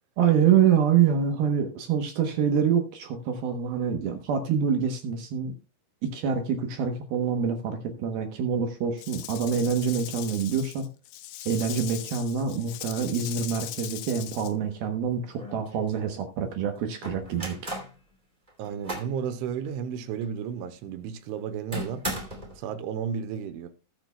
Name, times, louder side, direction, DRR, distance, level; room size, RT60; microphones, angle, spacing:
voice 1, 0.2-5.5 6.0-10.9 11.5-17.6, right 7 dB, 70° right, 2.3 m, -26 dB
Rattle / Rattle (instrument), 9.0-14.5, left 14 dB, 80° left, 3.2 m, -39 dB
sound 1, 14.9-15.0 15.3-16.1 17.0-18.0 18.5-19.2 19.6-19.7 20.2-20.3 21.7-22.6, right 1 dB, 15° right, 1.7 m, -36 dB
voice 2, 18.6-22.1 22.6-23.7, right 7 dB, 90° right, 3.3 m, -33 dB
20.0 x 7.7 x 2.3 m
omnidirectional pair, 5.5 m